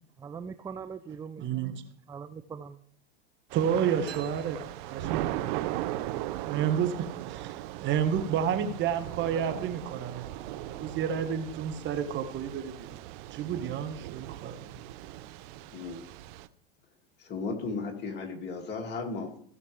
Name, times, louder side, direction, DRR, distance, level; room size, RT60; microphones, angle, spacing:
voice 1, 0.2-1.7 2.1-2.8, right 6 dB, 10° right, 10 dB, 0.4 m, -41 dB
voice 2, 1.4-1.7 3.5-4.6 4.9-5.5 6.3-12.9 13.3-14.8, right 8 dB, 40° right, 7 dB, 1.5 m, -30 dB
Thunder / Rain, 3.5-16.5, right 15 dB, 55° right, 0.7 m, -38 dB
sound 1, 4.1-5.8, right 7 dB, 90° right, 2.5 m, -51 dB
voice 3, 17.2-19.4, left 4 dB, 35° left, 2 dB, 2.4 m, -35 dB
16.5 x 6.6 x 3.4 m, 0.63 s
hypercardioid pair, 105°, 30 cm